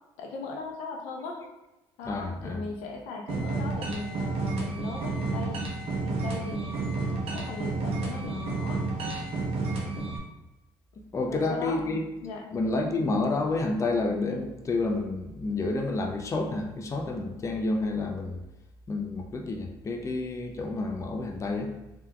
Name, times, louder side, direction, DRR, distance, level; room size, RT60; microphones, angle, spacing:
voice 1, 0.2-1.4 2.0-5.6 6.0-8.8 11.3-11.8 12.2-12.5, left 3 dB, 85° left, 1 dB, 0.6 m, -38 dB
voice 2, 2.1-2.6 11.1-12.0 12.5-18.4 18.9-21.7, left 2 dB, 30° left, 3 dB, 0.5 m, -29 dB
sound 1, 3.3-10.2, right 3 dB, 60° right, 0.9 m, -31 dB
3.5 x 2.9 x 2.3 m, 1.0 s
supercardioid pair, 75°, 11 cm